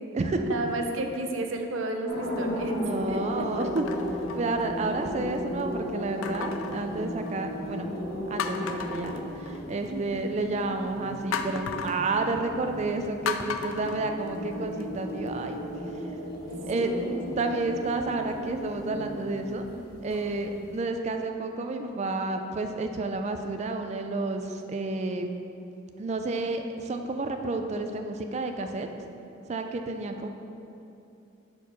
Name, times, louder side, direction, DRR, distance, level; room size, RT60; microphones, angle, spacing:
voice 1, 0.5-3.5 9.9-10.5 16.7-17.5, right 2 dB, 80° right, 4 dB, 0.6 m, -33 dB
sound 1, 0.7-1.2 1.8-2.0 3.6-5.1 6.2-7.6 8.0-8.1 8.4-9.9 11.3-12.1 13.3-14.8 15.3-15.4, left 6 dB, 90° left, 0.3 m, -36 dB
sound 2, 2.1-20.8, equal, 50° left, 1.3 m, -35 dB
voice 2, 2.9-3.9 4.3-7.9 8.3-15.6 15.9-16.0 16.6-16.9 17.4-19.6 20.0-25.3 26.0-28.9 29.5-30.3, right 3 dB, 35° right, 5 dB, 0.3 m, -30 dB
4.6 x 4.3 x 5.5 m, 2.7 s
head